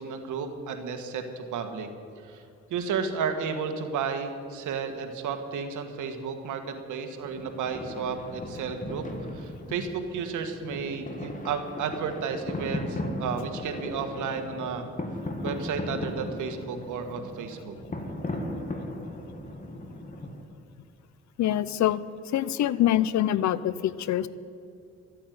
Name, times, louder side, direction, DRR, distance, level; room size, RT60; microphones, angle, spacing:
voice 1, 0.0-1.9 2.2-2.4 2.7-9.1 9.3-14.9 15.4-17.7, right 6 dB, 80° right, 6 dB, 1.7 m, -32 dB
sound 1, 7.2-20.4, left 1 dB, 25° left, 2.1 m, -37 dB
voice 2, 21.4-22.0 22.3-24.3, left 12 dB, 65° left, 18 dB, 0.6 m, -25 dB
13.0 x 8.7 x 9.3 m, 2.5 s
cardioid pair, 90°, 30 cm